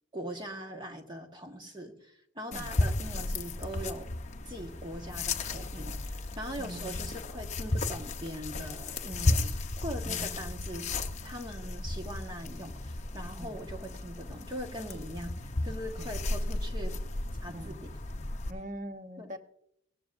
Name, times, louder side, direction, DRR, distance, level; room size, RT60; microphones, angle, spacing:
voice 1, 0.1-4.1 4.4-10.9 11.2-16.9 17.4-17.9 19.2-19.3, equal, 20° right, 1.4 m, -41 dB
sound 1, 2.5-18.5, left 2 dB, 35° left, 0.8 m, -34 dB
voice 2, 6.6-7.2 10.1-10.5 13.4-13.6 16.0-16.1 17.5-17.8 18.5-19.4, equal, 35° right, 1.0 m, -42 dB
19.0 x 16.0 x 2.6 m
head